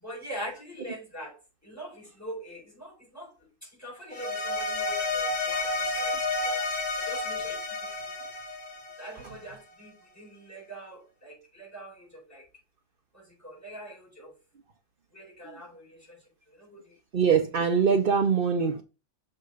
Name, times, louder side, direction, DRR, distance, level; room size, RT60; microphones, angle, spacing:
voice 1, 0.0-1.4 1.6-3.3 3.8-6.7 7.0-7.6 9.0-12.4 13.1-14.3 15.1-16.2 16.6-16.9, right 1 dB, 10° left, 5.4 m, -43 dB
sound 1, 4.1-9.4, left 3 dB, 40° left, 3.2 m, -31 dB
voice 2, 17.1-18.8, right 6 dB, 75° right, 0.5 m, -23 dB
6.7 x 4.3 x 6.5 m
omnidirectional pair, 2.2 m